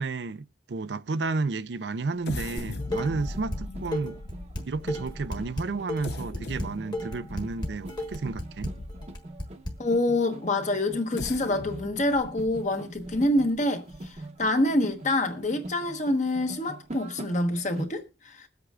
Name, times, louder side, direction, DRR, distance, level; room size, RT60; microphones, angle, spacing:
voice 1, 0.0-4.2 4.7-8.7, right 3 dB, 65° right, 0.5 m, -32 dB
sound 1, 2.2-9.4 9.9-10.0 10.9-14.5 14.9-15.0 15.4-15.7, left 2 dB, 60° left, 0.7 m, -40 dB
Dishes pots and pans, 2.6-3.6 3.9-9.7, left 1 dB, 25° left, 1.4 m, -33 dB
sound 2, 2.8-17.9, right 1 dB, 35° right, 0.9 m, -43 dB
voice 2, 9.8-18.5, left 1 dB, 40° left, 1.1 m, -26 dB
21.0 x 8.1 x 2.4 m
head